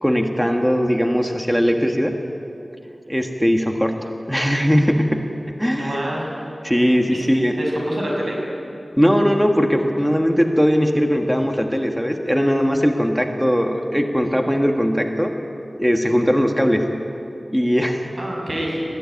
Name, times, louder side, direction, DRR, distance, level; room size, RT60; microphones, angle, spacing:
voice 1, 0.0-2.2 3.1-5.2 5.6-6.0 6.6-7.5 9.0-15.3 15.8-16.9 17.5-18.1, equal, ahead, 3 dB, 1.6 m, -19 dB
voice 2, 5.8-6.3 7.1-7.3 7.6-8.4 18.2-18.9, equal, 75° right, -2 dB, 6.4 m, -26 dB
21.0 x 15.5 x 9.4 m, 2.7 s
wide cardioid pair, 55°, 0 cm